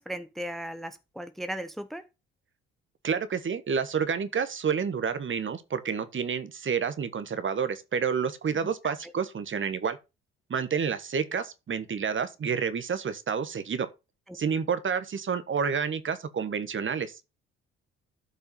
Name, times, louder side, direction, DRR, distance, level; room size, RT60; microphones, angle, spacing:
voice 1, 0.0-2.0 8.8-9.1 14.3-14.4, right 1 dB, ahead, 1.0 m, -37 dB
voice 2, 3.0-10.0 10.5-13.9 14.3-17.2, right 6 dB, 40° right, 1.3 m, -29 dB
12.5 x 5.5 x 3.9 m
hypercardioid pair, 45°, 31 cm